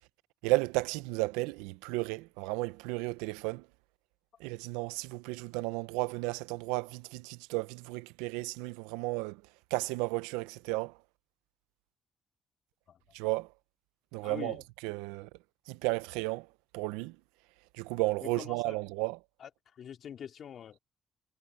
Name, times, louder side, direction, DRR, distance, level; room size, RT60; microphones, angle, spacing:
voice 1, 0.4-3.6 4.4-9.4 9.7-10.9 13.1-13.5 14.1-14.6 14.8-15.3 15.7-16.5 16.7-17.2 17.8-19.2, right 22 dB, 85° right, 0.8 m, -33 dB
voice 2, 14.2-14.6 18.2-18.8 19.4-19.5 19.7-20.8, left 8 dB, 65° left, 3.1 m, -44 dB
hypercardioid pair, 50°, 0 cm